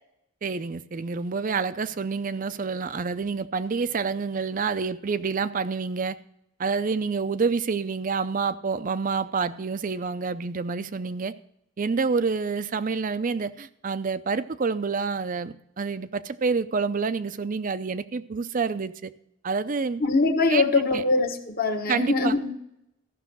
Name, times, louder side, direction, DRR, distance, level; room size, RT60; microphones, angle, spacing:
voice 1, 0.4-6.2 6.6-11.4 11.8-19.1 19.4-20.0 20.5-21.0 21.9-22.4, right 5 dB, 40° right, 14 dB, 0.5 m, -28 dB
voice 2, 20.0-22.5, left 3 dB, 45° left, 4 dB, 1.2 m, -23 dB
14.5 x 6.3 x 6.0 m, 0.78 s
head